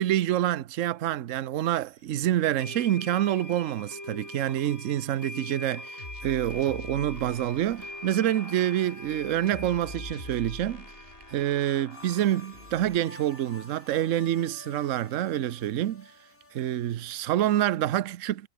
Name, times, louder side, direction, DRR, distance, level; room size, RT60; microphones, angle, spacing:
voice 1, 0.0-10.8 11.3-16.1 16.5-18.5, right 12 dB, 65° right, 1.0 m, -27 dB
sound 1, 1.7-1.8 2.6-14.2, left 1 dB, 10° left, 2.2 m, -44 dB
sound 2, 6.0-13.0, left 1 dB, 35° left, 6.2 m, -45 dB
sound 3, 11.9-17.8, left 2 dB, 60° left, 7.5 m, -51 dB
omnidirectional pair, 1.6 m